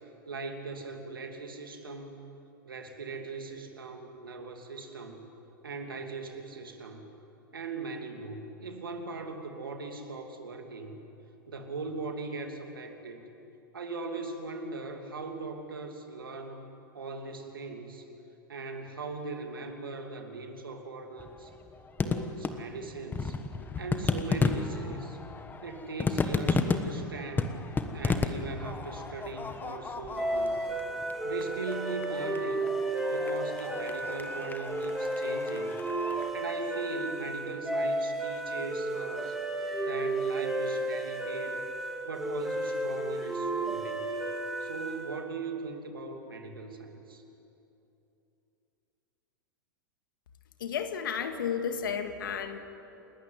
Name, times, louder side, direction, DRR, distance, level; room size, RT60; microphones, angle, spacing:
voice 1, 0.3-2.2 2.6-5.2 5.6-7.1 7.5-11.0 11.5-13.2 13.7-16.6 16.9-18.1 18.5-21.5 22.0-23.4 23.8-25.2 25.6-27.5 27.9-30.6 31.2-32.7 33.1-35.8 36.3-39.4 39.8-41.6 42.1-44.0 44.6-47.2, right 3 dB, 80° right, 4 dB, 2.7 m, -39 dB
sound 1, 21.2-36.3, left 4 dB, 15° left, 1.4 m, -34 dB
sound 2, 30.2-45.2, right 2 dB, 5° right, 3.5 m, -33 dB
voice 2, 50.6-52.6, left 7 dB, 70° left, 7 dB, 1.9 m, -32 dB
29.0 x 13.0 x 9.5 m, 2.8 s
hypercardioid pair, 95°, 11 cm